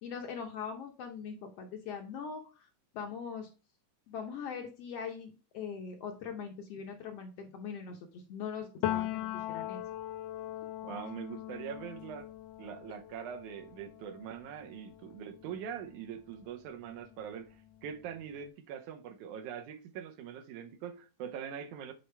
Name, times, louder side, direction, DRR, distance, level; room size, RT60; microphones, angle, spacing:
voice 1, 0.0-2.7 2.9-3.5 4.1-9.8, left 6 dB, 70° left, 1.6 m, -41 dB
Piano, 8.8-16.4 16.8-18.3, left 13 dB, 90° left, 1.5 m, -40 dB
voice 2, 10.8-12.3 12.6-21.9, right 8 dB, 80° right, 2.2 m, -43 dB
8.1 x 4.3 x 3.3 m
omnidirectional pair, 3.5 m